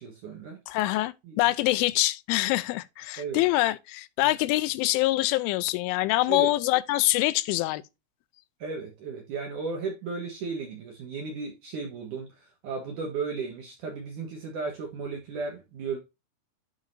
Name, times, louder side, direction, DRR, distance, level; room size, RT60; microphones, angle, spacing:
voice 1, 0.0-0.6 1.2-1.4 3.2-3.4 4.2-4.3 6.3-6.5 8.6-16.0, right 4 dB, 70° right, 2.0 m, -35 dB
voice 2, 0.7-7.8, left 18 dB, 90° left, 3.1 m, -25 dB
11.0 x 5.0 x 2.6 m
omnidirectional pair, 5.5 m